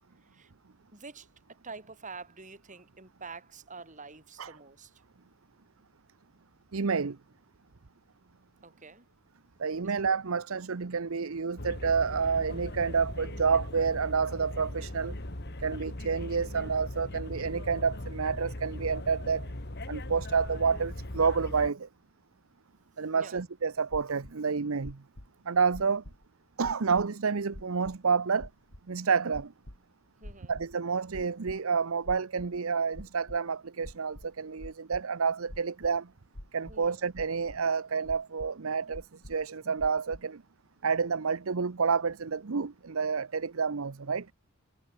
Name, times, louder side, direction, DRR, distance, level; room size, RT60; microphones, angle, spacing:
voice 1, 0.2-0.5 0.9-5.0 8.6-9.1 9.8-9.9 23.1-23.5 30.2-30.6 36.7-37.1, right 4 dB, 35° right, 6.4 m, -47 dB
voice 2, 6.7-7.2 9.6-15.2 15.6-19.5 19.9-21.9 23.0-25.0 25.5-26.0 26.6-28.5 28.9-29.5 30.5-36.1 36.5-40.4 40.8-44.3, right 5 dB, 75° right, 0.8 m, -29 dB
sound 1, 11.6-21.7, left 1 dB, 50° left, 2.5 m, -39 dB
sound 2, 23.9-24.3 24.8-25.3 25.7-26.3 26.6-27.1 27.5-28.0 28.4-28.8 29.3-29.8 30.2-30.7 31.1-31.6 32.0-32.6 32.9-33.4 33.8-35.0 35.5-35.9 36.3-36.9 37.1-37.6 38.0-38.5 38.9-39.4 39.8-40.2, left 1 dB, 85° left, 3.9 m, -45 dB
head